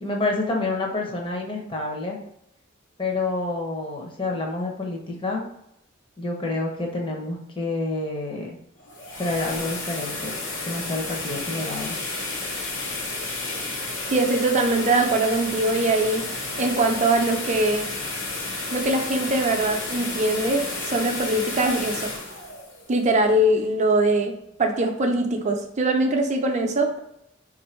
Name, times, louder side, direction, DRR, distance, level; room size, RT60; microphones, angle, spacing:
voice 1, 0.0-2.2 3.0-5.4 6.2-8.6 9.2-10.3 10.6-12.0, left 2 dB, 25° left, 0 dB, 0.8 m, -28 dB
sound 1, 8.8-23.7, left 2 dB, 75° left, 0.9 m, -32 dB
voice 2, 14.1-16.2 16.6-17.9 18.7-22.1 22.9-27.0, right 2 dB, 35° right, 4 dB, 0.5 m, -22 dB
3.8 x 2.6 x 4.3 m, 0.77 s
head